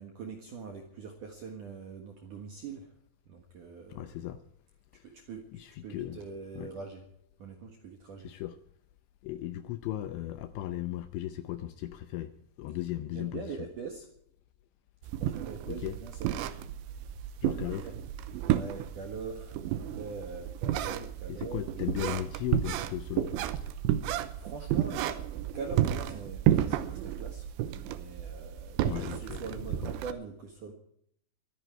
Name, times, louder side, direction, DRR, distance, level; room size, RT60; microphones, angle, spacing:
voice 1, 0.0-2.9 3.3-4.1 5.0-7.0 7.4-8.3 13.1-14.1 15.2-16.4 17.8-17.9 18.4-21.6 24.4-25.2 25.5-30.7, right 5 dB, 65° right, 3 dB, 2.1 m, -43 dB
voice 2, 3.9-4.4 4.9-5.1 5.5-6.2 6.6-6.7 8.2-8.6 9.2-12.3 12.6-13.6 15.7-16.0 17.4-17.9 21.3-23.3 28.8-29.4, left 13 dB, 80° left, 10 dB, 2.7 m, -36 dB
sound 1, 15.0-30.1, right 12 dB, 80° right, 2.8 m, -32 dB
24.0 x 10.0 x 4.6 m, 0.68 s
omnidirectional pair, 5.9 m